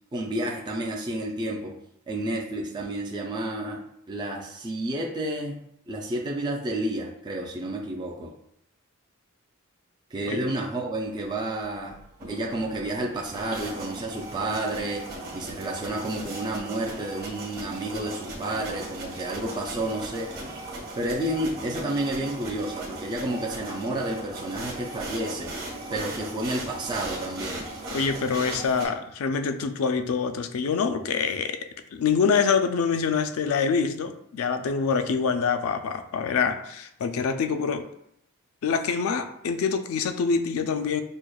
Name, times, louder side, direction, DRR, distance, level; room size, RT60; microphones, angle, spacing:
voice 1, 0.1-1.8 2.1-8.3 10.1-12.0 12.3-15.1 15.3-20.4 21.0-25.5 25.9-27.7, right 1 dB, 20° right, -1 dB, 0.3 m, -30 dB
sound 1, 12.0-28.9, right 1 dB, 45° right, 1.2 m, -38 dB
voice 2, 27.9-31.6 31.9-37.9 38.6-41.0, left 5 dB, 70° left, 8 dB, 0.4 m, -25 dB
6.3 x 2.1 x 2.2 m, 0.74 s
head